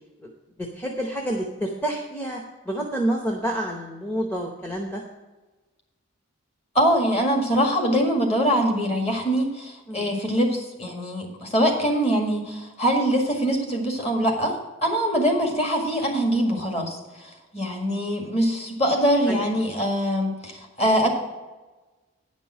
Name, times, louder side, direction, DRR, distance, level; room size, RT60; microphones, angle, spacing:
voice 1, 0.6-5.0 9.9-10.2 19.3-19.5, right 1 dB, 10° left, 0 dB, 0.8 m, -29 dB
voice 2, 6.8-14.6 14.8-17.0 17.2-21.1, equal, 30° left, 2 dB, 1.8 m, -23 dB
9.6 x 5.3 x 7.3 m, 1.2 s
head